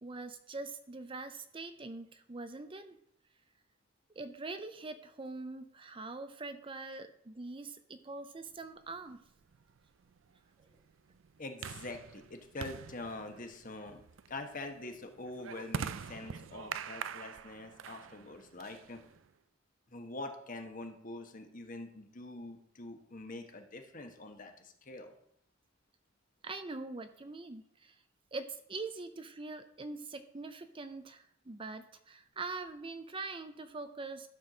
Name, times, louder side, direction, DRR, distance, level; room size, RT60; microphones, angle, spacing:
voice 1, 0.0-3.0 4.2-9.2 26.4-27.9 28.3-34.3, right 3 dB, 25° right, 9 dB, 0.5 m, -43 dB
sound 1, 8.9-19.3, right 7 dB, 75° right, 0.4 m, -45 dB
voice 2, 11.4-14.0 14.3-19.0 19.9-25.1, left 2 dB, 45° left, 5 dB, 1.3 m, -45 dB
12.0 x 4.6 x 6.4 m, 0.71 s
head